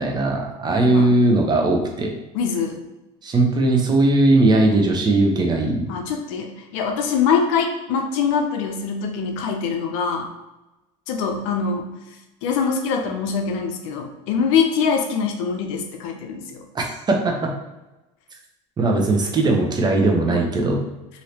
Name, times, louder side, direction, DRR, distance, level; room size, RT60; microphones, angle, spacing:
voice 1, 0.0-2.1 3.2-5.9 16.7-16.9 17.2-17.5 18.8-20.8, right 2 dB, 25° right, 1 dB, 0.7 m, -19 dB
voice 2, 0.8-1.1 2.3-2.8 5.9-10.3 11.1-11.9 12.4-16.6 20.3-20.4, left 6 dB, 80° left, 4 dB, 0.6 m, -23 dB
3.1 x 2.7 x 2.8 m, 1.0 s
supercardioid pair, 105°, 16 cm